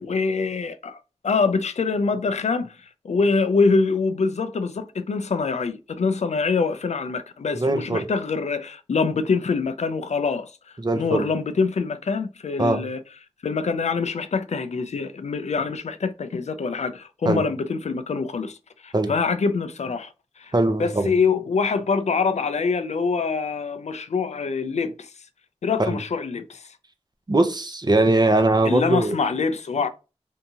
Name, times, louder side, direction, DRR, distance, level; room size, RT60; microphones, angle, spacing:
voice 1, 0.0-10.5 10.9-13.0 13.4-18.6 18.8-20.5 20.8-25.1 25.6-26.7 28.6-29.9, left 4 dB, 90° left, 0.4 m, -25 dB
voice 2, 7.5-8.1 10.8-11.3 12.6-12.8 17.3-17.4 18.9-19.1 20.5-21.1 25.8-26.0 27.3-29.1, right 2 dB, 40° right, 0.6 m, -21 dB
3.5 x 2.7 x 2.7 m
wide cardioid pair, 50°, 11 cm